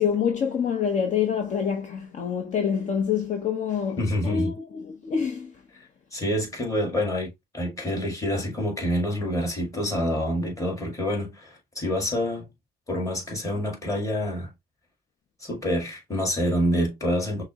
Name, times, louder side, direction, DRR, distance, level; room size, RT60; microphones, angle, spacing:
voice 1, 0.0-5.6, left 7 dB, 45° left, 0.8 m, -26 dB
voice 2, 4.0-4.5 6.1-12.5 12.9-14.5 15.4-17.4, equal, 20° left, 2.0 m, -27 dB
5.9 x 2.1 x 2.9 m
cardioid pair, 110°, 17 cm